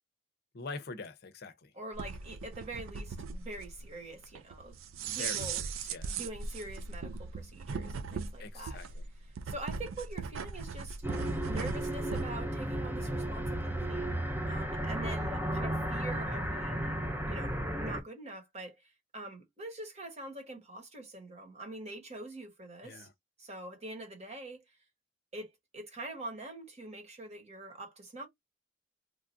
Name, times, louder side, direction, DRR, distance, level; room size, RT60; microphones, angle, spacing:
voice 1, 0.5-1.7 5.1-6.2 8.4-9.1 22.8-23.1, left 4 dB, 50° left, 0.6 m, -44 dB
voice 2, 1.7-4.8 5.1-5.6 6.0-8.8 9.4-11.2 11.4-17.0 17.3-23.1 23.4-24.8 25.3-28.3, right 2 dB, 35° right, 1.1 m, -44 dB
sound 1, 1.9-12.3, right 5 dB, 90° right, 0.4 m, -39 dB
sound 2, 11.0-18.0, right 1 dB, 10° right, 0.5 m, -34 dB
3.1 x 2.4 x 2.5 m
head